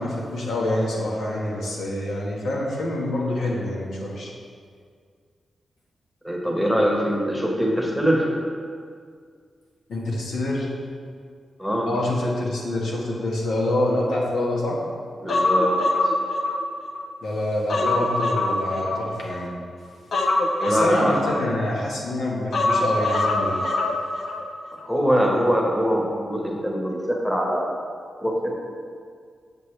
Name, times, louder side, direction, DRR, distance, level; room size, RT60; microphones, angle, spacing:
voice 1, 0.0-4.3 9.9-10.7 11.8-14.8 17.2-19.5 20.7-23.6, left 1 dB, 90° left, -3 dB, 1.5 m, -26 dB
voice 2, 6.2-8.4 11.6-11.9 15.2-15.9 20.6-21.2 24.8-27.7 28.2-28.5, equal, 5° left, -1 dB, 1.2 m, -23 dB
Human voice, 15.3-17.1 17.5-19.5 20.1-21.9 22.5-24.5 24.7-24.9, left 2 dB, 65° left, 0.7 m, -24 dB
7.4 x 6.7 x 3.3 m, 2.1 s
cardioid pair, 90°, 0 cm